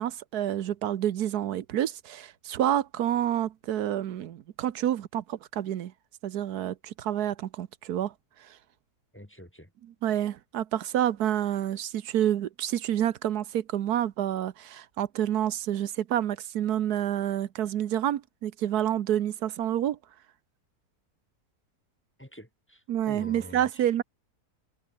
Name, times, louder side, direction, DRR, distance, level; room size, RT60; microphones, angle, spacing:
voice 1, 0.0-5.9 6.2-8.1 10.0-20.0 22.9-24.0, right 11 dB, 80° right, 1.4 m, -28 dB
voice 2, 9.1-9.7 22.2-23.9, equal, 10° left, 1.7 m, -46 dB
omnidirectional pair, 1.6 m